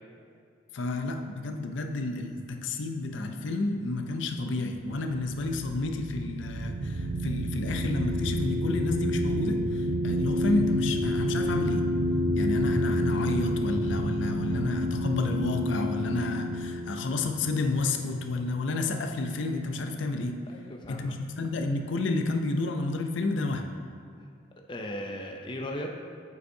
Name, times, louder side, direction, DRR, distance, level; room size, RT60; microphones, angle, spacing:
voice 1, 0.7-11.9 12.4-20.4 20.9-23.7, left 2 dB, 80° left, 5 dB, 0.5 m, -30 dB
sound 1, 5.4-18.6, equal, 55° right, 0.5 m, -29 dB
voice 2, 20.5-21.2 24.2-24.3 24.7-26.0, left 1 dB, 25° left, 2 dB, 0.4 m, -37 dB
7.9 x 5.2 x 2.7 m, 2.3 s
head